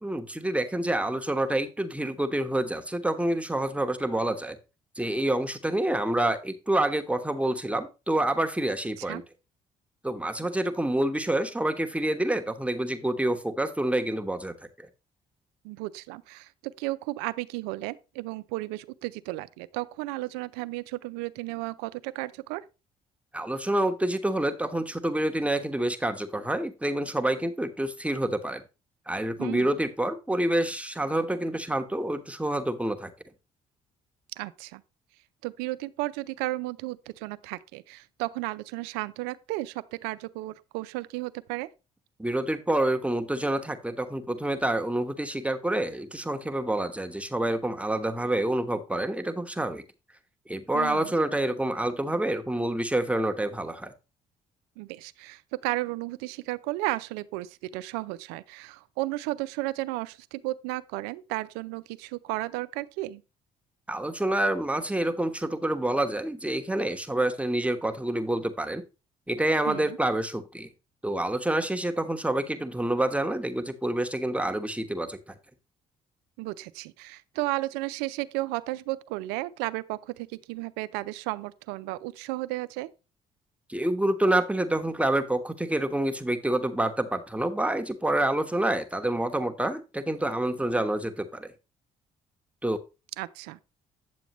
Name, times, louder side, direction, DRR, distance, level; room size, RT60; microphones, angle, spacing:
voice 1, 0.0-4.6 4.9-9.2 10.0-14.9 23.3-28.6 29.1-33.1 42.2-49.8 50.5-53.9 63.9-68.8 69.3-70.7 71.0-75.3 83.7-91.5 92.6-92.8, right 1 dB, 5° right, 1.1 m, -27 dB
voice 2, 15.6-22.6 29.4-29.7 34.4-34.8 35.4-41.7 50.7-51.1 54.8-63.2 69.6-70.0 76.4-82.9 93.2-93.6, right 19 dB, 85° right, 0.5 m, -34 dB
9.3 x 7.0 x 3.0 m
supercardioid pair, 60°, 17 cm